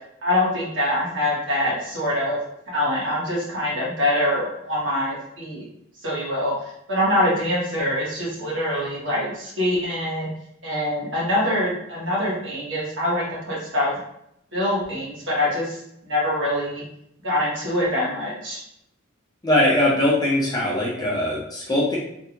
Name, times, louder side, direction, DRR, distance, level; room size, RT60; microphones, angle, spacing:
voice 1, 0.2-2.4 2.7-5.7 6.0-10.3 10.6-13.9 14.5-16.8 17.2-18.6, left 1 dB, 65° right, -6 dB, 1.4 m, -24 dB
voice 2, 19.4-22.0, left 1 dB, 20° left, -5 dB, 0.7 m, -21 dB
3.4 x 2.3 x 2.8 m, 0.75 s
head